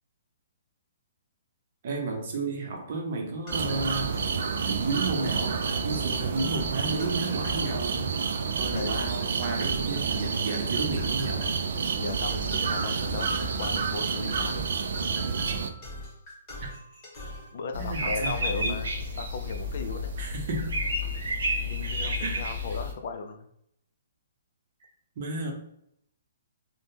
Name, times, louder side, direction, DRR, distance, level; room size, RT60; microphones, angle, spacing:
voice 1, 1.8-4.1 4.6-8.2 8.6-11.5 16.6-16.7 17.7-18.8 20.2-20.7 22.2-22.5 25.2-25.5, right 3 dB, 45° right, 2 dB, 0.7 m, -32 dB
sound 1, 3.5-17.5, left 1 dB, 20° left, 0.9 m, -41 dB
sound 2, 3.5-15.7, right 5 dB, 60° right, 0.3 m, -29 dB
voice 2, 12.0-14.7 17.5-20.1 21.6-23.5, left 4 dB, 50° left, 7 dB, 0.3 m, -37 dB
sound 3, 17.7-22.9, left 1 dB, 80° right, 0.8 m, -31 dB
3.4 x 2.1 x 2.7 m, 0.73 s
hypercardioid pair, 170°, 0 cm